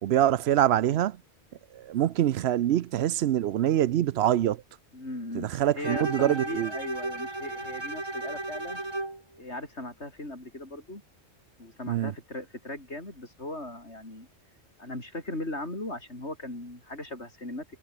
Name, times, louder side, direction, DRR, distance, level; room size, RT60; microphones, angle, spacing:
voice 1, 0.0-1.2 1.7-4.6 5.3-6.7 11.9-12.1, right 11 dB, 70° right, 0.8 m, -25 dB
voice 2, 4.9-8.8 9.4-11.0 11.6-14.3 14.8-17.6, left 1 dB, 75° left, 6.7 m, -38 dB
Bowed string instrument, 5.8-9.2, right 2 dB, 25° right, 1.9 m, -34 dB
omnidirectional pair, 1.2 m